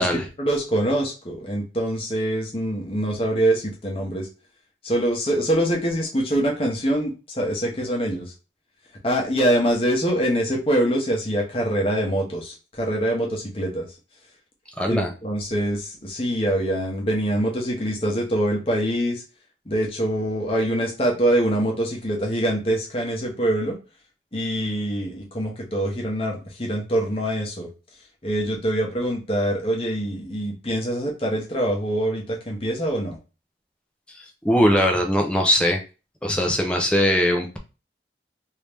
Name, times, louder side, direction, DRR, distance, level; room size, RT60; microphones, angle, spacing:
voice 1, 0.0-4.3 4.8-8.3 9.0-13.9 14.9-19.2 19.7-23.8 24.3-27.7 28.2-33.2, right 1 dB, 30° left, 0 dB, 0.9 m, -24 dB
voice 2, 14.8-15.1 34.4-35.8 36.2-37.6, equal, 5° left, 2 dB, 0.5 m, -20 dB
3.1 x 2.7 x 3.4 m, 0.32 s
head